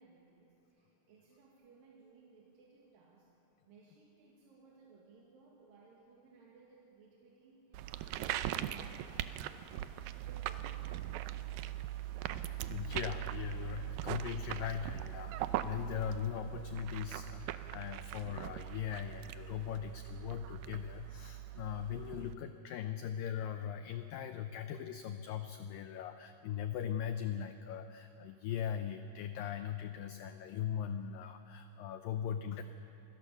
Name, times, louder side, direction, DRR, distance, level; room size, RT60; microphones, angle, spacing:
voice 1, 0.0-3.3 3.7-9.8 10.2-11.5, right 4 dB, 60° right, -4 dB, 3.5 m, -62 dB
sound 1, 7.7-22.3, right 13 dB, 85° right, 2.1 m, -41 dB
voice 2, 12.2-32.6, left 9 dB, 85° left, 8 dB, 2.0 m, -40 dB
26.0 x 16.5 x 6.9 m, 2.9 s
omnidirectional pair, 4.8 m